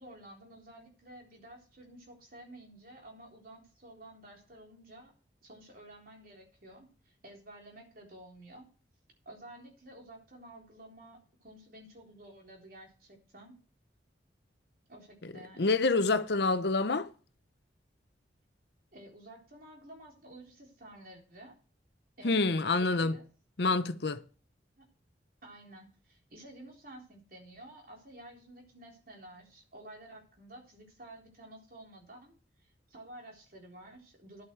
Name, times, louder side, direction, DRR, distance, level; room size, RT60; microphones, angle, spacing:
voice 1, 0.0-5.1 5.4-8.7 9.3-13.5 14.9-15.7 18.9-21.6 22.2-23.2 24.8-24.9 25.4-32.3 32.9-34.4, right 1 dB, 50° right, 3.8 m, -52 dB
voice 2, 15.6-17.1 22.2-23.2 23.6-24.2, left 3 dB, 65° left, 0.8 m, -27 dB
11.0 x 8.9 x 4.6 m
head